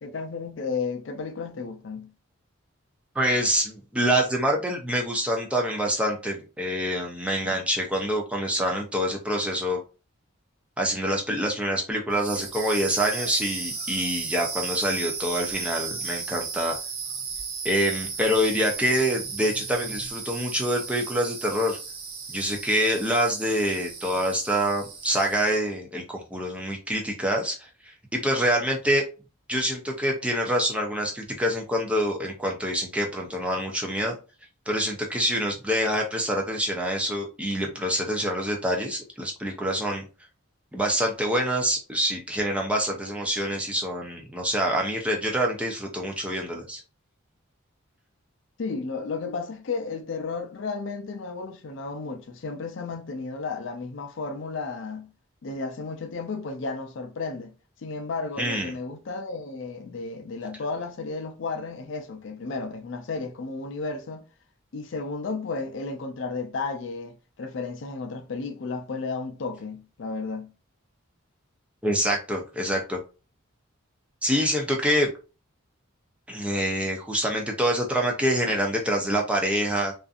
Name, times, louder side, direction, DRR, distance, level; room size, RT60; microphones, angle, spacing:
voice 1, 0.0-2.1 7.4-7.5 48.6-55.1 55.4-57.5 57.8-64.2 64.7-70.5, left 4 dB, 60° left, 0.4 m, -33 dB
voice 2, 3.2-9.8 10.8-16.8 17.6-21.8 22.3-29.0 29.5-34.1 34.7-40.0 40.7-46.8 58.4-58.7 71.8-73.0 74.2-75.1 76.3-79.9, equal, 5° right, 0.5 m, -26 dB
sound 1, 12.1-25.6, right 5 dB, 85° right, 0.7 m, -35 dB
2.5 x 2.5 x 2.4 m
head